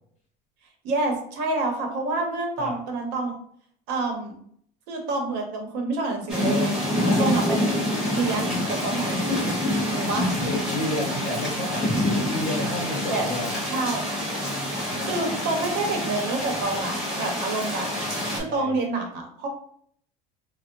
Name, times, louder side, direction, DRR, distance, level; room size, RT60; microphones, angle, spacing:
voice 1, 0.8-3.3 3.9-4.3 4.9-7.6 8.1-9.6 9.9-10.3 13.1-13.3 13.7-14.1 15.0-17.9 18.3-19.5, right 2 dB, 65° right, 3 dB, 0.9 m, -28 dB
sound 1, 6.3-18.4, left 1 dB, 5° right, 0.8 m, -26 dB
voice 2, 6.9-7.3 10.4-13.5 14.8-15.1 18.0-18.8, left 1 dB, 40° left, -1 dB, 0.8 m, -32 dB
3.3 x 2.1 x 2.9 m, 0.64 s
cardioid pair, 160°, 19 cm